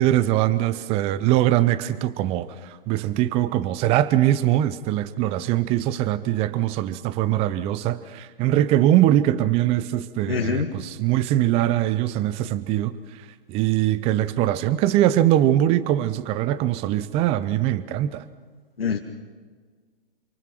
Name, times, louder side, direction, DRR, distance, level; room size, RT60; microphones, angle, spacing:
voice 1, 0.0-13.0 13.5-18.2, right 13 dB, 20° right, 0.7 m, -22 dB
voice 2, 10.3-10.7 18.8-19.0, left 6 dB, 85° left, 2.0 m, -24 dB
27.5 x 24.0 x 6.1 m
hypercardioid pair, 135°, 29 cm